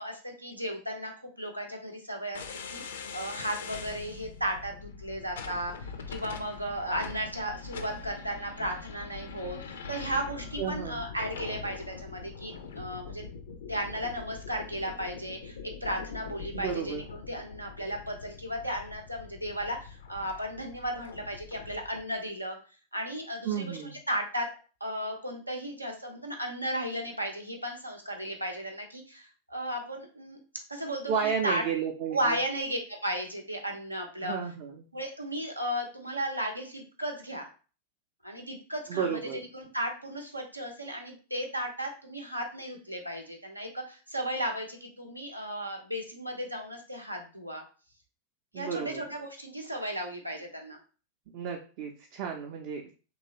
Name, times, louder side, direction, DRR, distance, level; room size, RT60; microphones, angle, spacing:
voice 1, 0.0-2.4 2.7-13.3 13.7-22.6 22.9-24.5 24.8-30.4 30.7-31.6 32.1-34.4 34.9-37.5 38.2-47.6 48.5-50.8, right 1 dB, 85° right, 2 dB, 0.7 m, -35 dB
sound 1, 2.3-22.1, left 5 dB, 65° left, 0.4 m, -43 dB
voice 2, 10.6-11.0 16.5-17.1 23.4-24.0 31.1-32.4 34.2-34.8 38.9-39.4 48.5-49.0 51.3-52.9, right 7 dB, 45° right, 1 dB, 0.5 m, -32 dB
3.0 x 2.9 x 2.8 m, 0.37 s
figure-of-eight pair, 90°, 0 cm